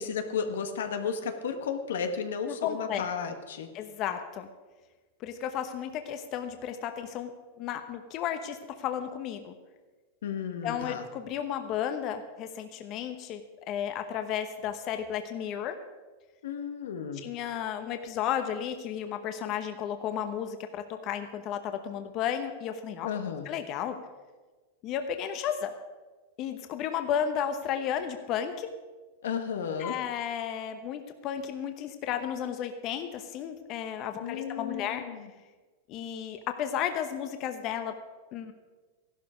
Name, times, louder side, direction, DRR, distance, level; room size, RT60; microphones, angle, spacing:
voice 1, 0.0-3.7 10.2-11.0 16.4-17.2 23.0-23.5 29.2-30.0 34.2-35.3, left 6 dB, 85° left, 6 dB, 1.5 m, -33 dB
voice 2, 2.5-3.1 3.7-4.5 5.2-7.3 7.6-9.5 10.6-13.4 13.7-15.8 17.2-23.1 23.4-24.0 24.8-25.7 26.4-28.7 29.8-35.0 35.9-38.0 38.3-38.5, left 9 dB, 40° left, 7 dB, 1.0 m, -33 dB
14.5 x 12.0 x 5.1 m, 1.3 s
supercardioid pair, 140°, 0 cm